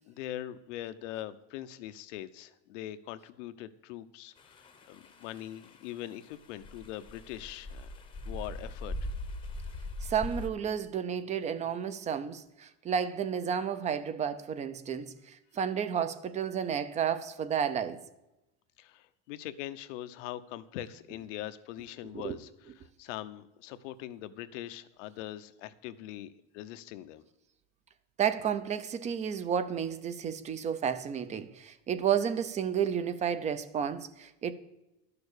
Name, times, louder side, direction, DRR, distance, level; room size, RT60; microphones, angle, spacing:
voice 1, 0.0-7.9 8.3-9.0 18.8-22.5 23.0-27.2, left 13 dB, 85° left, 0.9 m, -42 dB
sound 1, 4.4-10.5, left 1 dB, 15° left, 0.8 m, -41 dB
voice 2, 10.0-18.0 22.1-22.4 28.2-34.5, right 8 dB, 20° right, 0.5 m, -32 dB
12.0 x 6.9 x 6.6 m
cardioid pair, 160°, 36 cm